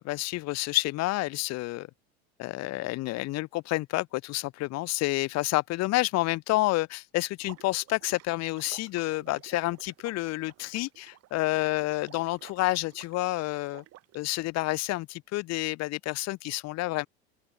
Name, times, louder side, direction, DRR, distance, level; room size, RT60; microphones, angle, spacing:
voice 1, 0.0-1.9 2.4-13.8 14.1-17.1, left 19 dB, 55° left, 2.7 m, -29 dB
Water / Liquid, 7.4-14.2, right 15 dB, 50° right, 7.3 m, -52 dB
open air
hypercardioid pair, 85°, 32 cm